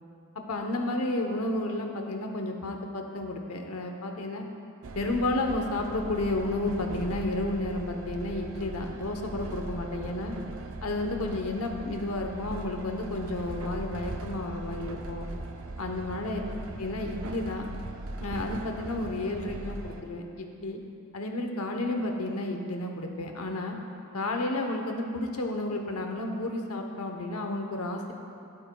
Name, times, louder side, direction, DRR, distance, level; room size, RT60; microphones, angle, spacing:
voice 1, 0.5-4.5 5.0-10.3 10.8-15.3 15.8-16.4 16.8-17.7 18.2-20.8 21.1-23.8 24.1-28.1, left 2 dB, 85° left, 3 dB, 0.9 m, -31 dB
Train, 4.8-20.0, right 2 dB, 65° right, 0.6 m, -39 dB
15.5 x 8.6 x 2.3 m, 2.6 s
head